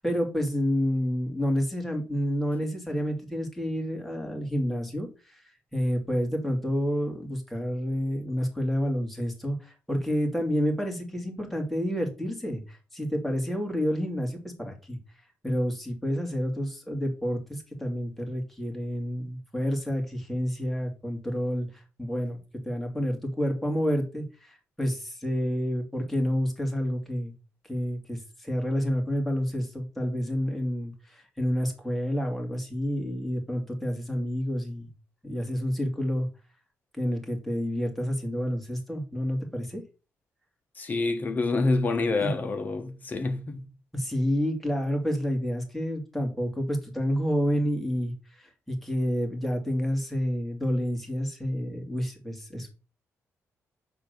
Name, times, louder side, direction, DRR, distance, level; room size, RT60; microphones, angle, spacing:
voice 1, 0.0-5.4 5.7-15.0 15.4-22.4 22.6-27.3 27.6-34.9 35.2-36.3 36.9-39.8 42.2-42.3 43.9-52.7, equal, 5° left, 2.4 m, -29 dB
voice 2, 40.8-43.6, left 3 dB, 30° left, 1.2 m, -27 dB
8.6 x 3.6 x 6.7 m
cardioid pair, 130°, 5 cm